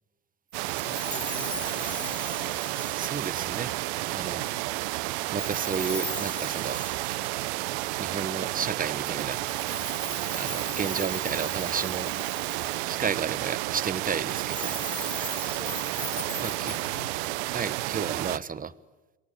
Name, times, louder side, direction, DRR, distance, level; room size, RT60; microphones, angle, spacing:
sound 1, 0.5-18.4, right 19 dB, 65° right, 1.0 m, -31 dB
Chime, 0.7-4.0 5.4-8.2 9.2-13.0 14.2-17.4, left 2 dB, 5° left, 3.4 m, -39 dB
voice 1, 0.8-2.6 4.5-4.9 15.6-16.0 16.3-17.4, left 6 dB, 85° left, 1.4 m, -47 dB
voice 2, 2.9-3.7 4.1-4.5 5.3-6.8 8.0-9.4 10.4-12.1 12.9-14.8 16.4-16.8 17.5-18.7, right 6 dB, 25° right, 1.2 m, -32 dB
27.5 x 23.0 x 9.1 m
figure-of-eight pair, 65°, 36 cm